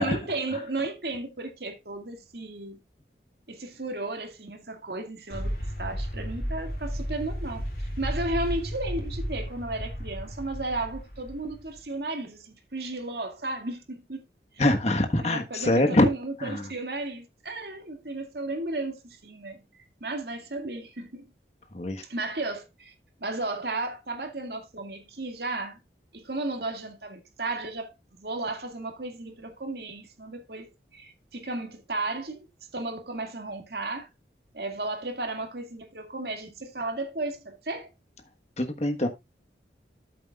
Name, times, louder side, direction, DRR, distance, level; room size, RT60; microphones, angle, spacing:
voice 1, 0.0-2.8 3.5-14.2 15.2-21.3 22.1-22.9 23.2-25.8 26.1-32.5 32.7-34.1 34.5-37.9, right 2 dB, 65° right, 2.2 m, -34 dB
sound 1, 5.3-11.8, equal, 55° left, 3.0 m, -33 dB
voice 2, 14.6-16.1 16.4-16.7 21.7-22.0 38.6-39.1, left 1 dB, 40° left, 1.4 m, -24 dB
13.0 x 7.5 x 2.4 m
head